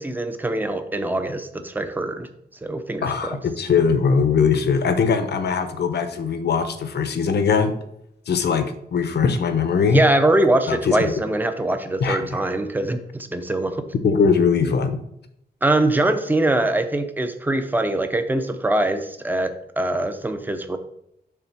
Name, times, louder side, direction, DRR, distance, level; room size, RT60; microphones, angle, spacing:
voice 1, 0.0-2.3 2.6-3.4 9.9-13.9 15.6-20.8, right 1 dB, 10° right, 8 dB, 0.5 m, -23 dB
voice 2, 3.0-7.7 8.3-10.0 10.7-11.1 12.0-12.2 14.0-15.0, left 5 dB, 75° left, 9 dB, 0.8 m, -20 dB
7.0 x 3.3 x 5.9 m, 0.76 s
wide cardioid pair, 155°, 17 cm